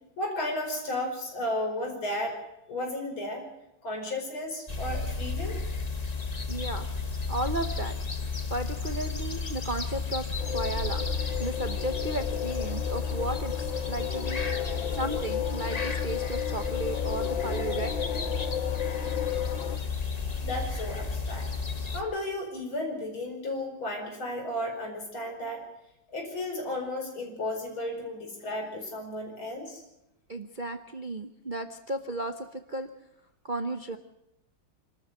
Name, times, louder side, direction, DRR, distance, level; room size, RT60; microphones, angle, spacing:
voice 1, 0.2-2.4 2.7-3.5 3.8-5.6 20.4-21.5 21.9-25.7 26.1-29.8, left 1 dB, 85° left, 2 dB, 5.6 m, -33 dB
sound 1, 4.7-22.0, left 4 dB, 25° left, 1.1 m, -32 dB
voice 2, 6.5-6.9 7.3-8.1 8.5-11.1 11.4-14.4 14.9-17.9 30.3-32.9 33.4-34.0, right 2 dB, 45° right, 6 dB, 0.6 m, -34 dB
sound 2, 10.4-19.8, left 10 dB, 70° left, 1.8 m, -34 dB
26.5 x 13.0 x 7.9 m, 0.87 s
omnidirectional pair, 2.2 m